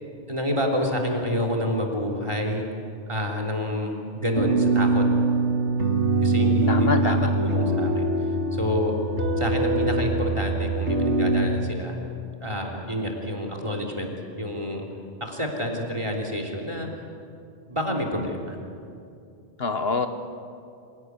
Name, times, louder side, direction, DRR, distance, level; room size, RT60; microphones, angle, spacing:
voice 1, 0.3-2.6 3.1-5.1 6.2-8.1 8.5-8.9 9.4-12.0 12.4-14.1 14.4-14.9 15.2-16.9 17.7-18.6, equal, 25° right, 2 dB, 3.3 m, -28 dB
sound 1, 4.3-11.5, right 2 dB, 85° right, 2.6 m, -23 dB
voice 2, 6.7-7.3 19.6-20.1, left 4 dB, 60° left, 8 dB, 1.4 m, -25 dB
26.5 x 18.0 x 9.6 m, 2.5 s
omnidirectional pair, 1.2 m